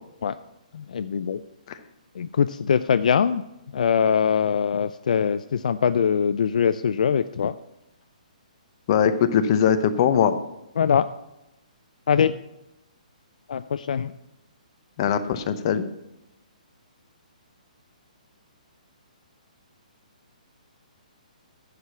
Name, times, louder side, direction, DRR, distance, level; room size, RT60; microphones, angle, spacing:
voice 1, 0.7-1.4 2.2-3.4 3.7-7.6 10.8-11.1 12.1-12.3 13.5-14.1, left 7 dB, 70° left, 13 dB, 0.4 m, -22 dB
voice 2, 8.9-10.3 15.0-15.9, left 8 dB, 35° left, 10 dB, 0.8 m, -21 dB
10.0 x 5.0 x 7.0 m, 0.91 s
hypercardioid pair, 160°, 4 cm